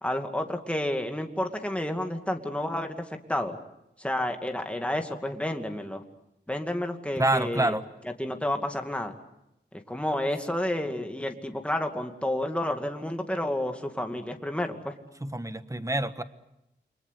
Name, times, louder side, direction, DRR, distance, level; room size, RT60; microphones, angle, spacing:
voice 1, 0.0-2.9 3.3-3.6 4.0-6.0 6.5-7.7 8.2-9.1 9.9-14.9, left 1 dB, 5° left, 4 dB, 2.3 m, -30 dB
voice 2, 7.2-7.8 15.2-16.2, right 1 dB, 15° right, 11 dB, 1.5 m, -27 dB
29.5 x 24.0 x 8.2 m, 0.86 s
wide cardioid pair, 90°, 19 cm